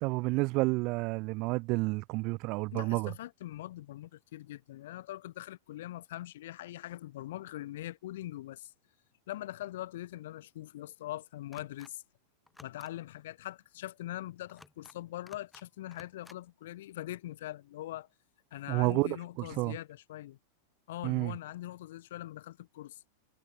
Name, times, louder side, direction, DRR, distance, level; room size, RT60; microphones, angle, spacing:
voice 1, 0.0-3.1 18.7-19.8 21.0-21.3, right 25 dB, 40° right, 0.5 m, -30 dB
voice 2, 2.7-8.7 9.3-12.0 12.6-18.1 18.5-20.4 20.9-23.0, left 14 dB, 55° left, 4.3 m, -42 dB
sound 1, 11.5-11.9 12.5-12.9 14.5-15.0 15.3-15.6 15.9-16.4, left 2 dB, 5° left, 6.7 m, -55 dB
figure-of-eight pair, 90°, 0 cm